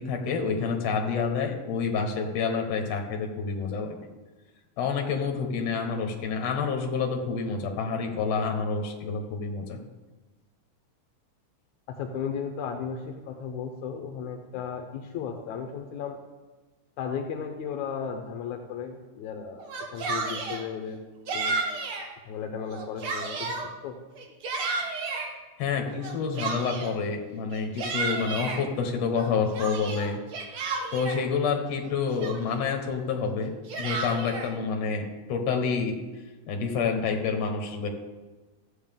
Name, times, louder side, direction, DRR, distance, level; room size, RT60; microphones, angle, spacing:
voice 1, 0.0-4.0 4.8-9.8 25.6-30.2 30.9-33.5 33.8-36.0 36.5-37.9, left 5 dB, 65° left, 3 dB, 2.3 m, -28 dB
voice 2, 11.9-16.2 17.0-21.0 21.3-21.6 22.3-23.6 23.8-24.0, left 6 dB, 80° left, 4 dB, 2.2 m, -35 dB
Yell, 19.6-20.6 21.3-22.1 22.6-23.7 24.2-25.3 26.0-27.0 27.5-28.6 29.1-31.2 31.8-31.9 32.2-32.7 33.4-34.5, right 3 dB, 55° right, 1.9 m, -32 dB
14.5 x 7.9 x 3.6 m, 1.2 s
omnidirectional pair, 3.3 m